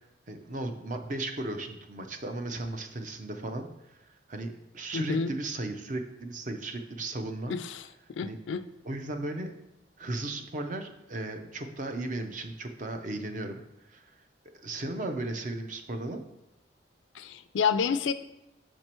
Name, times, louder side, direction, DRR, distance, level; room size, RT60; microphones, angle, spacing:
voice 1, 0.3-7.6 8.2-8.4 8.8-9.6 10.0-13.6 13.9-14.1 14.6-16.2, right 2 dB, 45° right, 6 dB, 0.6 m, -36 dB
voice 2, 4.9-5.3 7.5-8.6 17.1-18.1, left 6 dB, 90° left, 12 dB, 0.4 m, -29 dB
6.0 x 4.5 x 4.4 m, 0.89 s
head